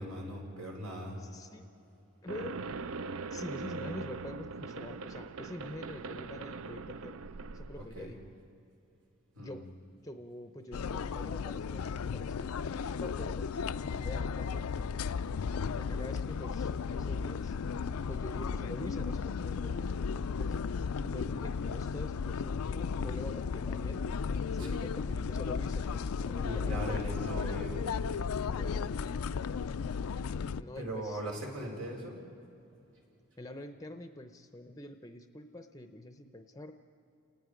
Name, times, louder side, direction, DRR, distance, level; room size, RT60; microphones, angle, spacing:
voice 1, 0.0-1.2 7.8-8.1 9.3-9.6 24.6-24.8 26.4-27.8 30.8-32.2, right 1 dB, 85° right, -1 dB, 4.8 m, -39 dB
voice 2, 1.2-1.7 2.2-2.7 3.3-7.2 7.5-8.2 9.4-9.7 10.0-13.5 13.8-15.2 15.7-17.6 18.1-20.7 21.0-24.0 24.5-27.3 28.6-28.9 30.6-31.2 33.4-36.8, left 1 dB, 15° left, 7 dB, 0.6 m, -46 dB
sound 1, 2.3-8.3, right 4 dB, 65° right, 0.5 m, -41 dB
sound 2, 10.7-30.6, left 5 dB, 80° left, 0.4 m, -34 dB
30.0 x 19.0 x 5.1 m, 2.7 s
head